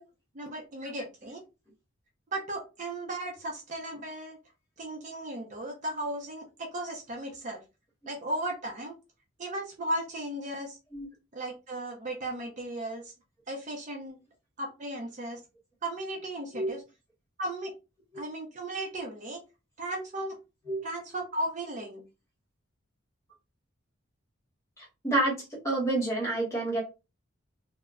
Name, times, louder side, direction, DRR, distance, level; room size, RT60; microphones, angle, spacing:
voice 1, 0.3-1.4 2.3-4.4 4.8-7.6 8.1-8.9 9.4-10.8 11.3-13.1 13.5-14.2 14.6-15.4 15.8-16.8 17.4-17.7 18.2-19.4 19.8-20.3 20.8-22.0, right 1 dB, 35° right, 1 dB, 0.5 m, -36 dB
voice 2, 25.6-26.8, right 2 dB, 15° left, -3 dB, 1.0 m, -27 dB
2.1 x 2.0 x 3.4 m, 0.28 s
head